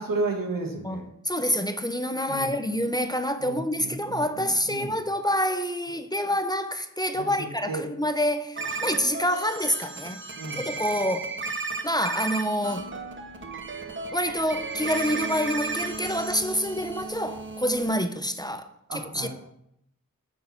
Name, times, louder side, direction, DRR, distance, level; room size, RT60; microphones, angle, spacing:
voice 1, 0.0-1.1 2.3-2.6 3.4-4.9 7.1-7.8 10.3-10.7 18.9-19.3, right 3 dB, 90° right, 1.5 m, -33 dB
voice 2, 0.8-10.2 10.6-11.3 11.8-12.9 14.1-18.7 19.1-19.3, equal, 10° left, 0.7 m, -27 dB
sound 1, 8.6-18.0, right 3 dB, 35° right, 0.8 m, -34 dB
8.6 x 4.6 x 5.7 m
wide cardioid pair, 45°, 33 cm